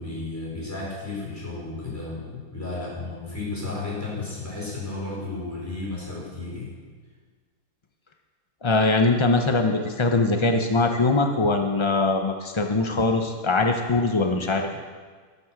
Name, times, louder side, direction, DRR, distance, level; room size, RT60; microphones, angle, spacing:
voice 1, 0.0-6.7, left 3 dB, 10° left, -6 dB, 4.9 m, -33 dB
voice 2, 8.6-14.7, left 3 dB, 50° left, 4 dB, 0.3 m, -22 dB
12.5 x 11.0 x 5.9 m, 1.5 s
omnidirectional pair, 1.7 m